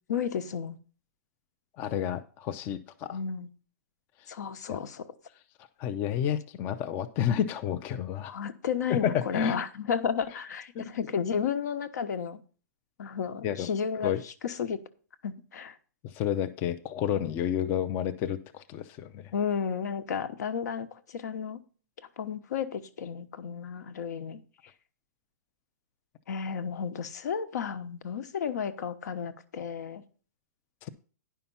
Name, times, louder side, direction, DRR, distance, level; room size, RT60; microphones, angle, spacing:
voice 1, 0.1-0.8 3.1-3.5 4.3-5.1 8.3-12.4 13.0-14.1 14.4-14.8 15.2-15.8 19.3-21.6 22.2-24.4 26.3-30.0, left 7 dB, 70° left, 1.1 m, -32 dB
voice 2, 1.8-3.2 4.3-4.4 4.7-4.8 5.8-8.4 8.9-9.6 10.7-10.9 13.4-13.7 14.0-14.2 16.0-19.3 30.8-30.9, left 9 dB, 20° left, 0.4 m, -30 dB
10.0 x 5.7 x 5.5 m
hypercardioid pair, 165°, 10 cm